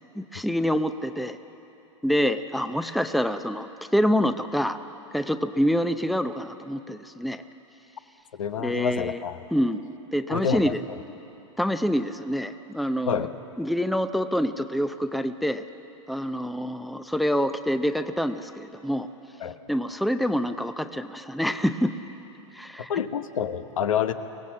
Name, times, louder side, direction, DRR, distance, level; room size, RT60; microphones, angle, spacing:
voice 1, 0.2-1.4 2.0-4.8 5.1-7.4 8.6-9.2 9.5-10.8 11.6-13.3 13.6-15.6 16.1-19.1 19.7-21.9 22.6-22.9, equal, ahead, 10 dB, 0.6 m, -26 dB
voice 2, 8.4-9.5 10.3-10.8 13.1-13.3 19.4-19.6 22.9-24.1, left 8 dB, 90° left, 9 dB, 1.1 m, -27 dB
23.5 x 17.5 x 7.4 m, 3.0 s
hypercardioid pair, 120°, 17 cm